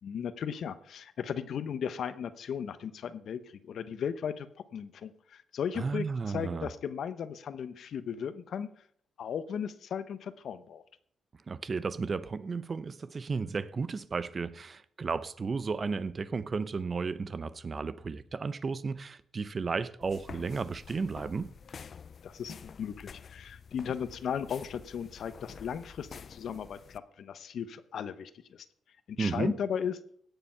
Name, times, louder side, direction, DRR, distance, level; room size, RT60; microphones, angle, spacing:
voice 1, 0.0-8.7 9.2-10.8 22.2-28.7 29.1-30.0, left 7 dB, 70° left, 0.9 m, -36 dB
voice 2, 5.7-6.7 11.5-21.5 29.2-29.5, right 4 dB, 40° right, 0.7 m, -33 dB
sound 1, 20.0-27.0, left 6 dB, 50° left, 0.4 m, -49 dB
17.0 x 6.9 x 5.6 m
cardioid pair, 90°, 0 cm